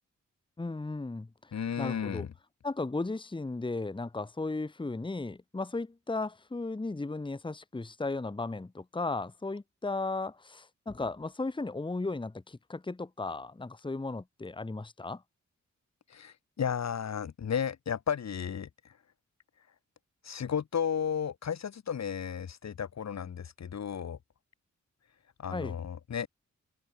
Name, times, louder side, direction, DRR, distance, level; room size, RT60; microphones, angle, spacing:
voice 1, 0.6-1.5 1.8-2.3 2.6-15.2 25.5-25.8, left 3 dB, 15° left, 1.1 m, -35 dB
voice 2, 1.5-2.3 16.1-18.7 20.2-24.2 25.4-26.3, left 7 dB, 60° left, 1.5 m, -33 dB
cardioid pair, 55°, 30 cm